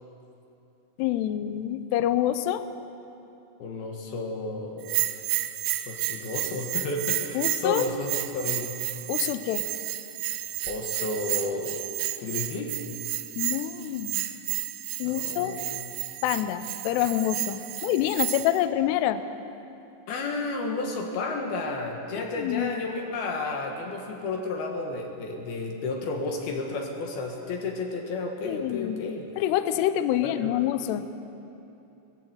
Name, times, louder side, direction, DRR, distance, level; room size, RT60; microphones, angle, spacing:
voice 1, 1.0-2.6 7.4-7.9 9.1-9.7 13.4-14.3 15.0-15.6 16.2-19.2 22.2-22.7 28.4-29.1 29.4-31.2, left 12 dB, 80° left, 11 dB, 2.6 m, -27 dB
voice 2, 3.6-5.0 5.9-8.8 10.7-11.8 12.2-12.7 15.0-15.9 20.1-29.3 30.2-30.7, left 3 dB, 65° left, 2 dB, 3.0 m, -32 dB
Bell, 4.8-18.6, right 15 dB, 90° right, 3.2 m, -31 dB
20.5 x 15.5 x 8.1 m, 2.8 s
omnidirectional pair, 5.3 m